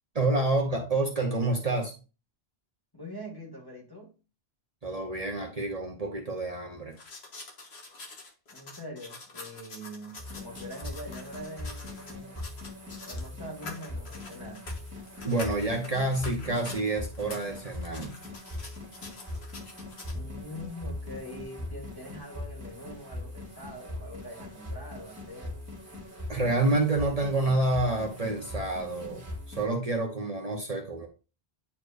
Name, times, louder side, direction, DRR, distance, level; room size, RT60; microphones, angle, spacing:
voice 1, 0.1-1.9 4.8-7.0 15.2-18.1 26.3-31.1, right 2 dB, 40° right, 1.1 m, -28 dB
voice 2, 2.9-4.1 8.5-12.4 13.1-14.7 20.1-25.6, equal, 20° left, 2.1 m, -43 dB
sound 1, 6.9-13.3 13.6-16.8 17.1-20.2, left 3 dB, 85° left, 1.6 m, -46 dB
sound 2, 10.2-29.6, left 1 dB, 15° right, 1.8 m, -41 dB
9.7 x 4.4 x 2.5 m
omnidirectional pair, 1.0 m